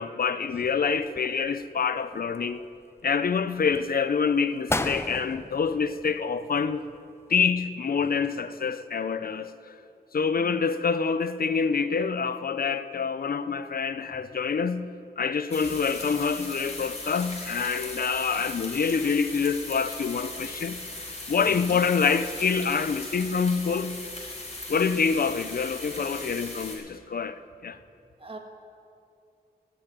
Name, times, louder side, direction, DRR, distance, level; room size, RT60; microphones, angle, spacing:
voice 1, 0.0-2.7 3.0-6.8 7.3-9.7 10.1-20.8 21.3-24.0 24.7-27.8, left 5 dB, 60° left, 0.5 m, -26 dB
sound 1, 0.9-1.7 2.1-3.0 3.5-3.9 4.4-4.5 4.7-6.6 6.9-7.0, left 2 dB, 15° left, 0.6 m, -34 dB
sound 2, 15.5-26.8, left 2 dB, 40° left, 4.3 m, -38 dB
voice 2, 21.5-21.8 27.7-27.8 28.2-28.4, right 2 dB, 35° right, 1.6 m, -43 dB
13.0 x 8.9 x 9.4 m
wide cardioid pair, 95°, 17 cm